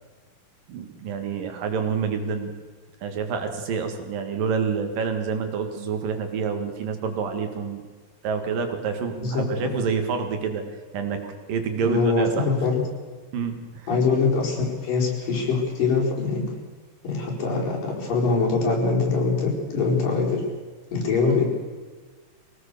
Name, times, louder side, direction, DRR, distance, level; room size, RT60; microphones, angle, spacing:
voice 1, 0.7-2.5 3.0-7.8 8.2-10.6 10.9-12.5 13.3-13.9 21.2-21.4, right 6 dB, 85° right, 6 dB, 3.7 m, -28 dB
voice 2, 9.2-9.7 11.8-12.8 13.9-16.5 17.0-20.4 20.9-21.5, left 4 dB, 80° left, -2 dB, 6.3 m, -23 dB
24.0 x 18.0 x 6.8 m, 1.4 s
omnidirectional pair, 3.8 m